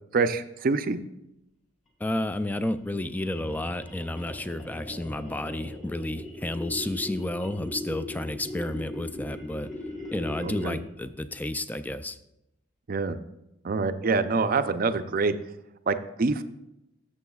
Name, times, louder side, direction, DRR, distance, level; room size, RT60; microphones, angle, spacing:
voice 1, 0.1-1.0 10.4-10.8 12.9-13.2 13.6-15.3 15.9-16.4, right 4 dB, 45° right, 10 dB, 0.5 m, -26 dB
voice 2, 2.0-9.7 10.1-12.2, left 1 dB, 10° left, 12 dB, 0.3 m, -31 dB
sound 1, 2.4-11.0, left 1 dB, 40° left, 2.7 m, -39 dB
13.0 x 7.3 x 2.3 m, 0.86 s
head